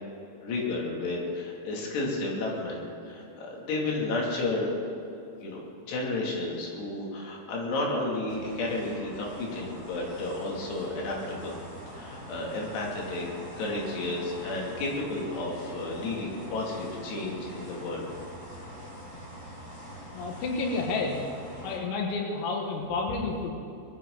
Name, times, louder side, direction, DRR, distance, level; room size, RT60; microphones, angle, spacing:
voice 1, 0.4-4.7 5.4-11.6 11.9-13.3 13.6-18.1, left 2 dB, 60° left, -2 dB, 4.5 m, -32 dB
sound 1, 8.3-21.8, equal, 15° left, 3.5 m, -44 dB
voice 2, 20.1-21.2 21.6-23.5, left 3 dB, 90° left, 1 dB, 4.3 m, -30 dB
21.5 x 14.5 x 4.0 m, 2.8 s
omnidirectional pair, 5.8 m